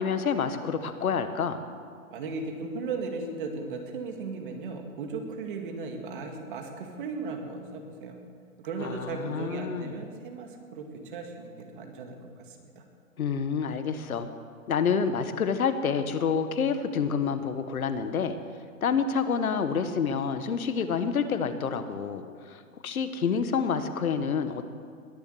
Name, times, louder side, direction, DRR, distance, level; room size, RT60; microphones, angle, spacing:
voice 1, 0.0-1.6 8.8-9.9 13.2-14.3 14.7-18.4 18.8-24.7, left 6 dB, 90° left, 10 dB, 1.5 m, -28 dB
voice 2, 2.1-8.2 8.6-12.8, right 4 dB, 40° right, 3 dB, 2.0 m, -36 dB
21.0 x 7.3 x 7.9 m, 2.1 s
hypercardioid pair, 165°, 41 cm